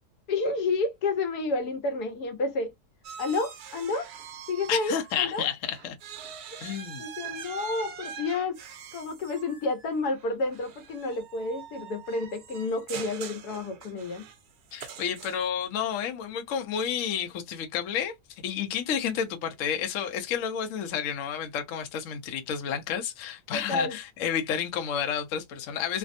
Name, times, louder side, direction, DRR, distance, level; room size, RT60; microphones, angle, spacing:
voice 1, 0.3-2.7 3.2-4.1 4.5-5.5 7.0-8.6 8.9-14.2 23.5-24.0, left 3 dB, 85° left, 1.3 m, -30 dB
sound 1, 3.0-5.4 5.7-15.6, right 8 dB, 85° right, 1.2 m, -44 dB
voice 2, 4.7-5.9 6.6-7.0 14.7-18.2 18.4-26.0, left 8 dB, 65° left, 0.9 m, -30 dB
3.3 x 2.1 x 2.5 m
omnidirectional pair, 1.6 m